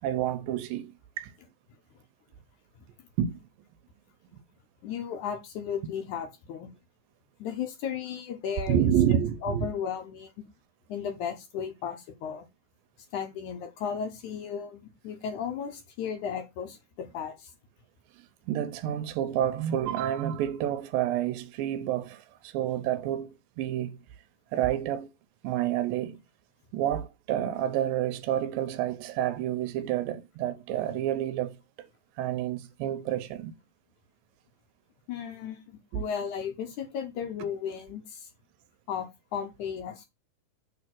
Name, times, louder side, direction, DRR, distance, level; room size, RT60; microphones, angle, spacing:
voice 1, 0.0-1.3 3.2-3.5 8.7-9.7 18.1-24.0 24.5-25.1 25.4-26.2 26.7-31.9 32.2-33.6 35.9-36.0, right 11 dB, 85° right, 2.4 m, -29 dB
voice 2, 4.8-6.7 7.4-10.3 10.9-12.5 13.1-17.5 35.1-38.3 38.9-40.1, left 7 dB, 70° left, 2.0 m, -35 dB
6.6 x 3.4 x 6.0 m
omnidirectional pair, 4.1 m